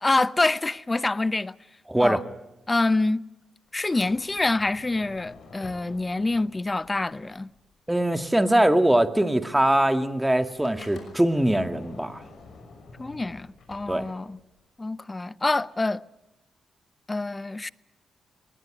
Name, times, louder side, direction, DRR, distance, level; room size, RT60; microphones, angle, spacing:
voice 1, 0.0-1.5 2.0-2.2 2.7-3.2 3.7-7.5 13.0-14.4 14.8-16.0 17.1-17.7, left 2 dB, 25° left, 0.7 m, -26 dB
voice 2, 1.9-2.2 7.9-12.2 13.9-14.1, right 1 dB, 10° right, 1.9 m, -22 dB
Sliding door, 3.7-8.0 8.2-14.6, left 4 dB, 70° left, 6.0 m, -49 dB
20.5 x 19.5 x 9.8 m
supercardioid pair, 60°, 0 cm